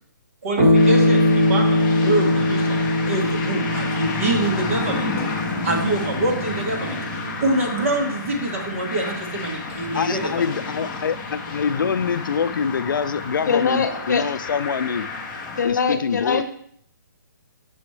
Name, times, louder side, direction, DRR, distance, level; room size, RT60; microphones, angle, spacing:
voice 1, 0.4-2.8 3.1-5.1 5.6-7.0 7.4-10.3, right 1 dB, 45° right, 1 dB, 1.3 m, -25 dB
sound 1, 0.6-9.4, left 1 dB, 30° right, 1.3 m, -22 dB
sound 2, 0.7-15.7, left 4 dB, 10° left, 0.5 m, -31 dB
voice 2, 9.9-15.1 15.6-16.4, left 6 dB, 90° left, 14 dB, 0.4 m, -25 dB
voice 3, 13.5-14.2 15.6-16.4, left 5 dB, 60° left, 9 dB, 0.8 m, -22 dB
6.2 x 5.9 x 3.2 m, 0.62 s
hypercardioid pair, 175°, 11 cm